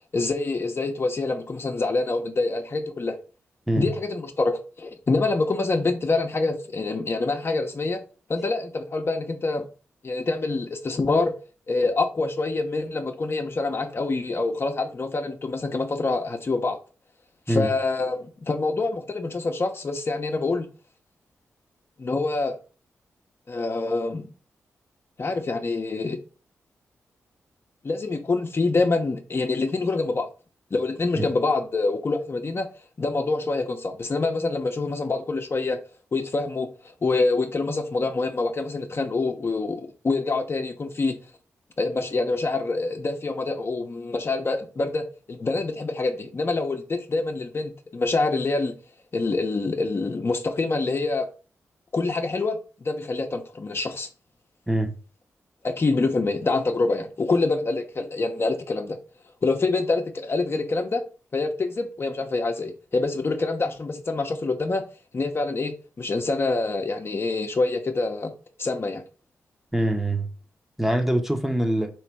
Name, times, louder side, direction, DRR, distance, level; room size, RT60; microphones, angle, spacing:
voice 1, 0.1-3.2 3.7-8.0 8.3-9.7 10.0-11.4 11.7-16.8 17.5-20.7 22.0-22.6 23.5-24.3 25.2-26.2 27.8-30.3 30.7-32.7 33.0-35.8 36.1-36.7 37.0-41.2 41.8-48.7 49.1-51.3 51.9-54.1 55.6-59.0 59.4-61.0 61.3-64.8 65.1-68.3 68.6-69.0, left 3 dB, 45° left, 0.8 m, -26 dB
voice 2, 69.7-70.3 70.8-71.9, right 1 dB, 5° right, 0.9 m, -23 dB
3.2 x 3.1 x 4.6 m
supercardioid pair, 50°, 6 cm